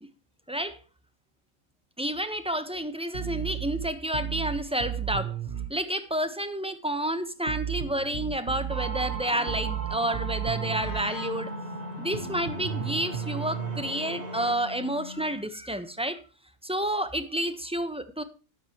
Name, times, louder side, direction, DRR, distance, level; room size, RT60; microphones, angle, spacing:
voice 1, 0.5-0.8 2.0-5.3 5.7-11.5 12.0-16.2 16.6-18.2, right 1 dB, 5° right, 10 dB, 1.1 m, -30 dB
sound 1, 3.1-5.7 7.5-11.1 12.1-13.8, right 9 dB, 50° right, 1.7 m, -33 dB
sound 2, 8.7-14.5, right 4 dB, 30° right, 1.1 m, -39 dB
Wind instrument woodwind instrument, 10.6-15.4, left 4 dB, 35° left, 1.6 m, -40 dB
13.0 x 11.0 x 3.1 m, 0.32 s
omnidirectional pair, 1.5 m